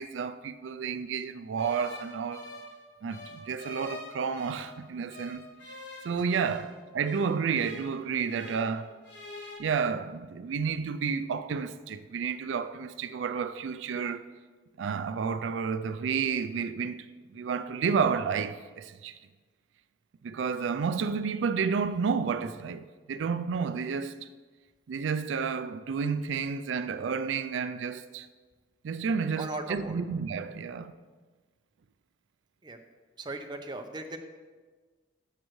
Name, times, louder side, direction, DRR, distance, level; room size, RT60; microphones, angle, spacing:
voice 1, 0.0-2.5 3.0-5.4 6.0-8.9 9.6-14.2 14.8-17.1 17.3-19.2 20.2-24.3 24.9-28.3 28.8-30.9, right 6 dB, 90° right, 0.4 m, -31 dB
sound 1, 1.6-4.8 5.1-8.8 9.0-9.6, left 2 dB, 70° left, 1.6 m, -45 dB
voice 2, 29.4-30.0 32.6-32.8 33.2-34.2, right 2 dB, 25° right, 0.7 m, -37 dB
11.5 x 7.5 x 3.1 m
head